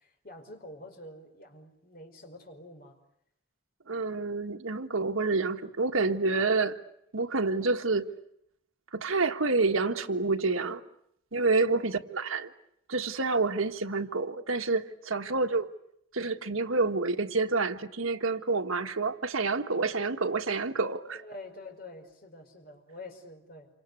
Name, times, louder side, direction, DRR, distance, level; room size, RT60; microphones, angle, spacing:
voice 1, 0.0-3.0 11.6-12.0 15.2-15.6 21.1-23.7, left 2 dB, 45° left, 5.1 m, -47 dB
voice 2, 3.9-6.8 7.1-8.1 8.9-10.8 11.3-12.5 12.9-15.7 16.1-21.2, right 3 dB, 90° right, 1.6 m, -28 dB
28.0 x 25.5 x 8.2 m
head